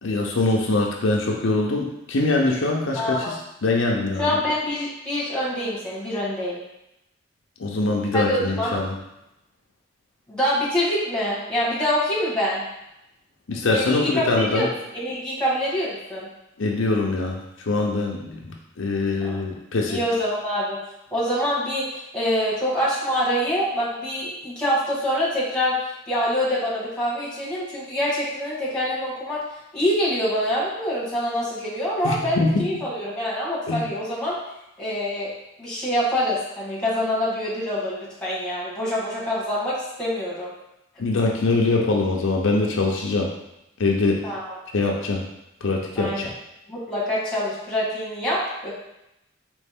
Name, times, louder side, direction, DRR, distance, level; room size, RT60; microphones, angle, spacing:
voice 1, 0.0-3.4 3.6-4.4 7.6-9.0 13.5-14.7 16.6-17.4 17.7-20.0 32.0-32.5 33.7-33.9 41.0-43.3 43.8-44.3 44.7-45.2 45.6-46.3, left 3 dB, 75° left, 0 dB, 0.6 m, -23 dB
voice 2, 2.9-3.3 4.2-6.6 8.1-8.7 10.3-12.6 13.7-16.3 19.2-19.4 19.9-20.8 21.1-29.4 29.7-34.4 34.8-35.3 35.6-40.5 44.2-44.6 46.0-46.3 46.7-48.7, equal, 5° left, -7 dB, 1.4 m, -25 dB
4.2 x 3.1 x 3.5 m, 0.86 s
head